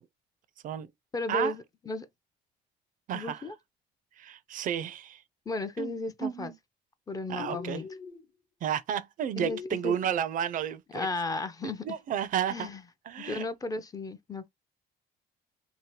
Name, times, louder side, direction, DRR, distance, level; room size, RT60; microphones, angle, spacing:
voice 1, 1.1-2.1 3.1-3.6 5.5-6.5 7.1-7.9 9.3-9.6 9.8-9.9 10.9-11.9 12.5-12.8 13.2-14.5, left 3 dB, 20° left, 0.4 m, -34 dB
voice 2, 3.1-3.4 4.2-5.2 5.8-5.9 6.2-6.5 7.3-7.8 8.6-11.1 11.6-12.7 13.1-13.4, right 9 dB, 50° right, 0.4 m, -32 dB
sound 1, 7.3-8.3 9.4-10.3, left 7 dB, 55° left, 0.9 m, -42 dB
2.7 x 2.1 x 3.1 m
cardioid pair, 110°, 17 cm